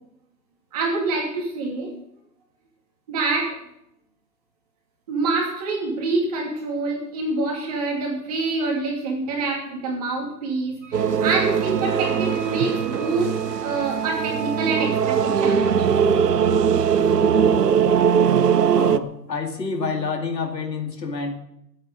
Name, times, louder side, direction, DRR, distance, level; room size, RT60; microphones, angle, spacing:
voice 1, 0.7-1.9 3.1-3.6 5.1-13.3 13.6-15.9, right 3 dB, 25° right, 0 dB, 2.6 m, -26 dB
Wind instrument woodwind instrument, 10.8-14.8, right 5 dB, 5° right, 3.9 m, -42 dB
sound 1, 10.9-19.0, right 7 dB, 70° right, 0.9 m, -20 dB
voice 2, 18.7-21.4, left 4 dB, 80° left, 5 dB, 2.3 m, -28 dB
20.0 x 8.6 x 5.3 m, 0.77 s
hypercardioid pair, 160°, 49 cm